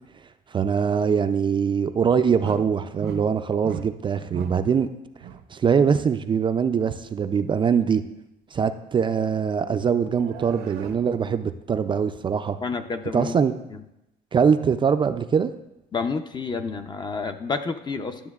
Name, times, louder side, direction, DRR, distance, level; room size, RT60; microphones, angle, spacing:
voice 1, 0.5-4.9 5.5-8.0 8.5-12.6 13.1-13.5 14.3-15.5, right 6 dB, 30° right, 10 dB, 0.3 m, -22 dB
sound 1, 2.4-2.7 3.0-3.3 3.6-4.0 4.3-4.6 5.2-5.5 10.0-11.1, right 7 dB, 70° right, 0.6 m, -37 dB
voice 2, 12.6-13.4 13.7-13.8 15.9-18.2, left 4 dB, 25° left, 8 dB, 0.5 m, -29 dB
12.0 x 7.0 x 2.4 m, 0.89 s
cardioid pair, 110°, 17 cm